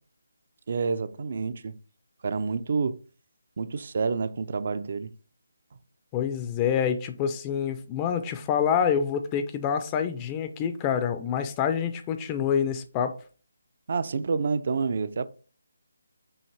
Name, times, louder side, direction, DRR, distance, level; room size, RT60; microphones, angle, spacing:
voice 1, 0.7-1.7 2.2-3.0 3.6-5.1 13.9-15.3, right 4 dB, 50° right, 0.4 m, -28 dB
voice 2, 6.1-13.2, left 8 dB, 20° left, 0.4 m, -27 dB
5.5 x 2.6 x 3.3 m
figure-of-eight pair, 160°, 0 cm